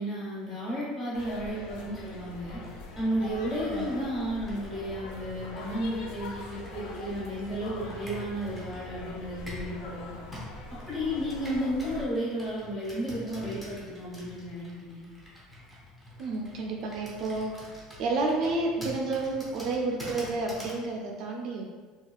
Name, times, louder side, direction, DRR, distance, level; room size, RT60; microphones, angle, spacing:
voice 1, 0.0-2.6 2.9-10.2 10.9-15.0, equal, 25° left, -9 dB, 1.3 m, -33 dB
sound 1, 1.1-12.1, left 2 dB, 75° left, 0.4 m, -42 dB
Computer keyboard, 1.9-9.8 10.3-20.8, left 1 dB, 5° left, 0.6 m, -47 dB
voice 2, 16.2-21.6, right 3 dB, 50° right, 0 dB, 0.3 m, -30 dB
3.4 x 2.3 x 2.2 m, 1.4 s
cardioid pair, 165°, 0 cm